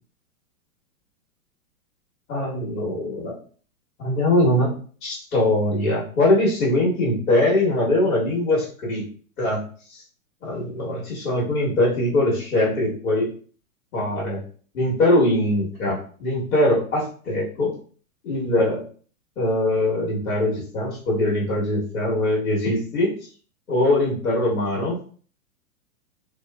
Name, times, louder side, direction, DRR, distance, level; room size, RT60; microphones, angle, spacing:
voice 1, 2.3-3.3 4.0-4.7 5.0-9.0 9.4-9.6 9.9-10.0 10.4-13.3 13.9-14.4 14.7-17.8 18.2-18.8 19.4-23.1 23.7-25.0, left 1 dB, 65° left, -6 dB, 1.3 m, -22 dB
2.9 x 2.0 x 2.2 m, 0.43 s
supercardioid pair, 175°, 43 cm